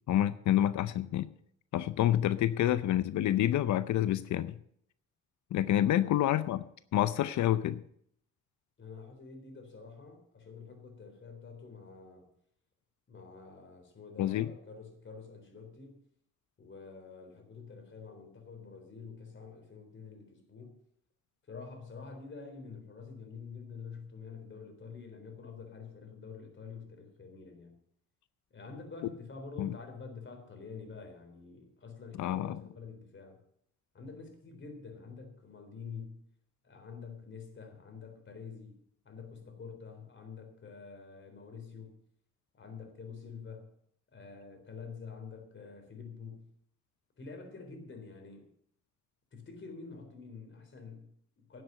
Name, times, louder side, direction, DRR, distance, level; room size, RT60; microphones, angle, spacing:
voice 1, 0.1-1.3 1.7-4.6 5.5-6.6 6.9-7.8 14.2-14.5 29.6-29.7 32.2-32.6, left 12 dB, 70° left, 15 dB, 0.6 m, -28 dB
voice 2, 5.9-6.2 8.8-12.3 13.1-16.0 16.6-20.8 21.4-27.8 28.5-33.4 33.9-36.2 36.6-38.8 39.0-41.9 42.5-43.7 44.1-46.5 47.2-48.5 49.3-51.6, left 5 dB, 40° left, 4 dB, 3.8 m, -47 dB
11.5 x 7.8 x 7.7 m, 0.68 s
cardioid pair, 90°, 30 cm